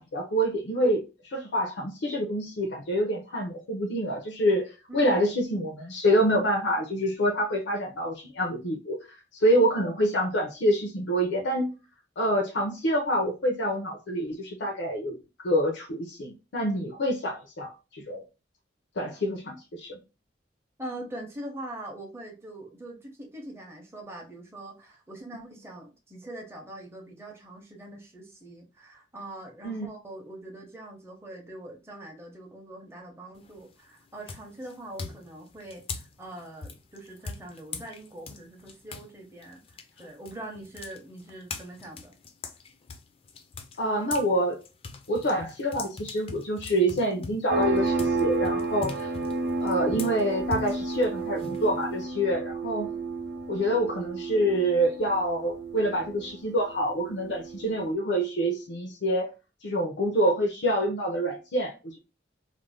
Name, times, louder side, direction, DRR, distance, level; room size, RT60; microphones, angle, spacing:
voice 1, 0.0-9.0 9.4-11.7 12.2-15.2 15.4-18.2 19.0-20.0 29.6-29.9 43.8-44.6 45.1-49.1 49.6-52.9 53.5-59.3 59.6-62.0, equal, 80° left, 0.5 m, -26 dB
voice 2, 4.9-5.2 20.8-42.1, right 1 dB, 15° right, 0.6 m, -43 dB
sound 1, 33.4-33.7 34.3-39.1 39.4-44.3 44.6-52.0, left 4 dB, 30° left, 0.3 m, -41 dB
sound 2, 47.5-57.8, right 3 dB, 70° right, 0.6 m, -31 dB
2.5 x 2.1 x 3.3 m
head